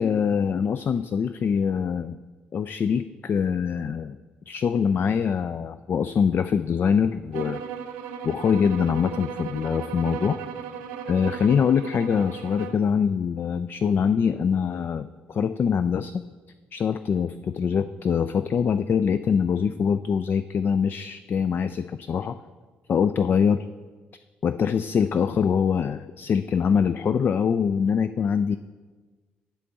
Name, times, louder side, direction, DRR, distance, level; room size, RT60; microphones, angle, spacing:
voice 1, 0.0-2.2 2.5-4.2 4.5-7.6 8.2-10.4 11.1-16.2 16.7-22.4 22.9-23.6 24.4-28.6, left 7 dB, 40° left, 11 dB, 0.3 m, -24 dB
sound 1, 7.3-12.8, right 7 dB, 75° right, 0.5 m, -36 dB
11.5 x 4.2 x 6.7 m, 1.3 s
figure-of-eight pair, 40°, 5 cm